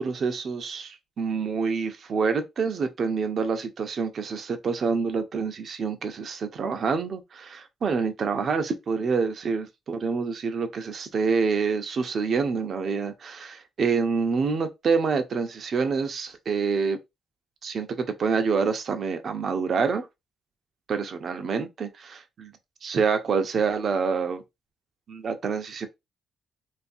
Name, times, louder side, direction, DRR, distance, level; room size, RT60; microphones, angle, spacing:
voice 1, 0.0-17.0 17.6-20.1 20.9-22.5 22.8-24.4 25.1-25.9, right 5 dB, 55° right, 0.5 m, -27 dB
2.6 x 2.4 x 2.5 m
supercardioid pair, 55°, 0 cm